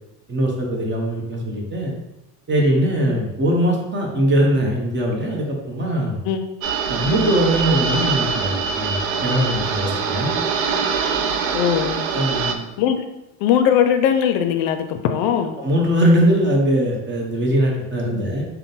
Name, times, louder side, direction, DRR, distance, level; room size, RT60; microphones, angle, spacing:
voice 1, 0.3-1.9 2.5-6.2 6.9-10.3 12.1-12.7 15.6-18.5, equal, 30° right, 0 dB, 1.0 m, -21 dB
sound 1, 6.6-12.6, right 5 dB, 90° right, 0.5 m, -23 dB
voice 2, 11.5-12.1 12.8-13.1 13.4-15.6 18.1-18.3, left 9 dB, 70° left, 8 dB, 0.5 m, -20 dB
3.7 x 2.2 x 3.9 m, 0.93 s
supercardioid pair, 90°, 39 cm